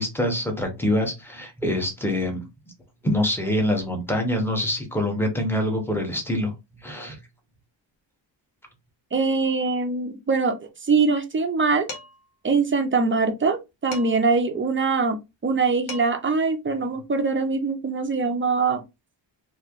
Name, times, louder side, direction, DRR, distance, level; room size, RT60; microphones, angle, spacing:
voice 1, 0.0-2.4 3.0-6.5 6.8-7.2, left 1 dB, 5° left, 0.8 m, -25 dB
voice 2, 9.1-10.6 10.9-11.9 12.4-18.8, right 4 dB, 25° right, 0.5 m, -23 dB
Dishes pots and pans, 11.9-12.3 13.9-14.4 15.5-15.6 15.9-16.3, left 3 dB, 90° left, 1.2 m, -38 dB
3.1 x 2.7 x 2.4 m
wide cardioid pair, 140°, 46 cm